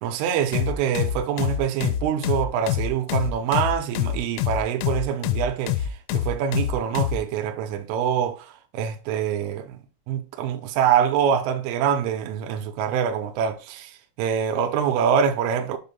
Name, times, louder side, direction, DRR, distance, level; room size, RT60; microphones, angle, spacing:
voice 1, 0.0-9.8 10.1-15.8, right 8 dB, 80° right, 3.2 m, -25 dB
sound 1, 0.5-7.2, left 11 dB, 85° left, 3.1 m, -26 dB
7.3 x 2.6 x 5.2 m
omnidirectional pair, 5.8 m